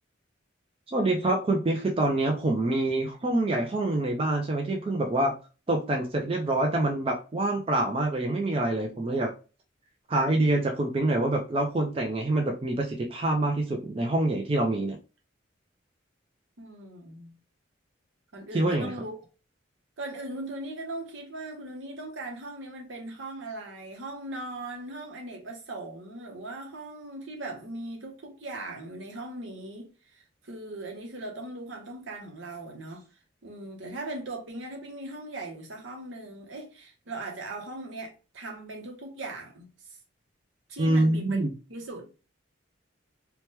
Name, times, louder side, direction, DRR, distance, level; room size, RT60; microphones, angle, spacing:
voice 1, 0.9-5.4 5.7-9.3 10.1-15.0 18.5-18.9 40.8-41.5, right 2 dB, 30° right, 0.4 m, -26 dB
voice 2, 16.6-17.3 18.3-19.1 20.0-33.1 33.4-40.0 40.7-41.4 41.7-42.2, right 2 dB, 75° right, 0.8 m, -39 dB
2.9 x 2.2 x 3.0 m
head